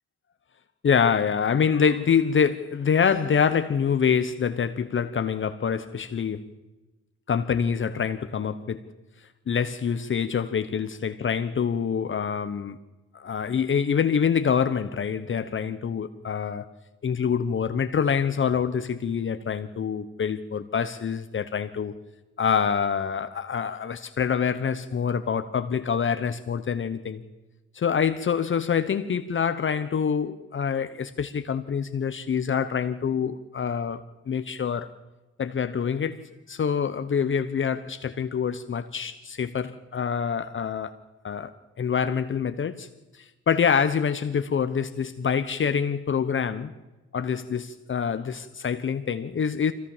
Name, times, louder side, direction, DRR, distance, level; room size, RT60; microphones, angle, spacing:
voice 1, 0.8-6.4 7.3-8.8 9.5-12.8 13.1-16.7 17.0-21.9 22.4-27.2 27.7-34.9 35.4-40.9 41.2-41.5 41.8-42.9 43.1-46.7 47.1-49.7, left 7 dB, 40° left, 1.0 m, -26 dB
24.0 x 16.5 x 7.3 m
cardioid pair, 90°, 30 cm